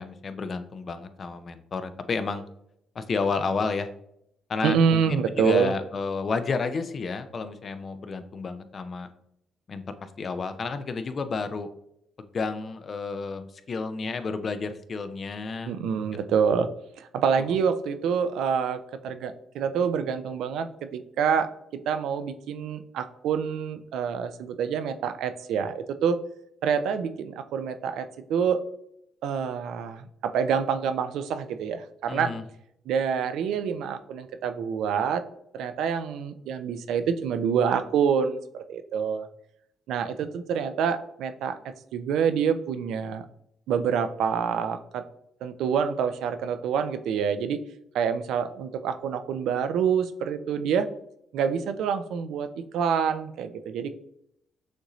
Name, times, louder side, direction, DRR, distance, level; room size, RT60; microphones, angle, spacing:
voice 1, 0.0-2.4 3.0-3.9 4.5-9.1 9.7-11.7 12.2-15.8 32.1-32.4, left 4 dB, 45° left, 10 dB, 0.5 m, -31 dB
voice 2, 4.6-5.7 15.7-16.7 17.0-21.5 21.9-26.2 26.6-28.6 29.2-32.3 32.9-35.2 35.5-39.3 39.9-43.3 43.7-45.0 45.4-47.6 47.9-50.9 51.3-52.5 52.7-53.9, right 7 dB, 80° right, 10 dB, 0.4 m, -27 dB
6.3 x 2.6 x 3.0 m, 0.75 s
cardioid pair, 90°, 0 cm